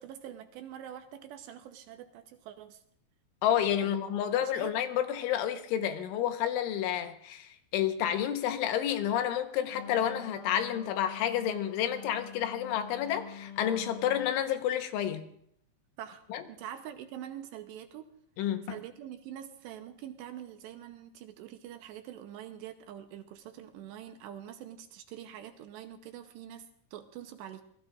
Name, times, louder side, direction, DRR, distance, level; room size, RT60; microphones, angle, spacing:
voice 1, 0.0-2.8 3.8-4.0 4.4-4.7 16.0-16.2 16.5-18.1 18.7-27.6, right 10 dB, 80° right, 7 dB, 2.8 m, -45 dB
voice 2, 3.4-15.3 16.3-16.4 18.4-18.8, left 10 dB, 85° left, 7 dB, 3.5 m, -30 dB
Wind instrument woodwind instrument, 9.7-14.4, left 8 dB, 60° left, 3.2 m, -46 dB
27.0 x 20.5 x 2.5 m, 0.68 s
omnidirectional pair, 5.5 m